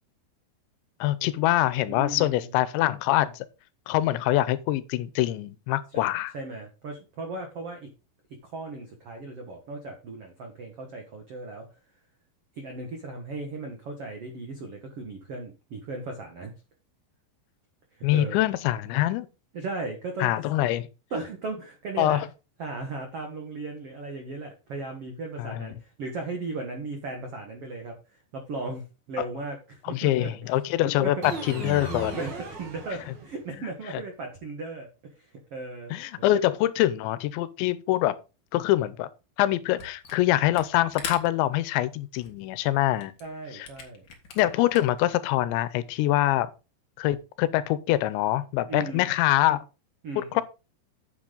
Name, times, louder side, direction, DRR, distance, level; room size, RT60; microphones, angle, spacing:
voice 1, 1.0-3.5 3.9-6.3 18.0-19.3 20.2-20.9 22.0-22.2 25.4-25.7 29.2-29.3 29.8-32.2 35.9-38.2 38.5-39.1 39.4-43.1 43.5-43.7 44.4-46.5 47.0-49.6 50.2-50.4, left 15 dB, 90° left, 3.0 m, -24 dB
voice 2, 1.9-2.5 5.9-6.0 6.3-7.9 8.3-11.6 12.6-16.5 18.0-18.4 19.5-20.3 20.6-20.7 21.1-22.3 22.6-30.3 31.0-31.1 32.1-35.9 43.2-44.0 48.7-49.1 50.0-50.4, right 3 dB, 75° right, 1.3 m, -37 dB
sound 1, 31.2-33.5, right 3 dB, 55° right, 1.2 m, -36 dB
Camera, 39.8-40.2 40.5-45.1, left 5 dB, 55° left, 1.3 m, -41 dB
8.7 x 8.2 x 3.9 m
omnidirectional pair, 5.1 m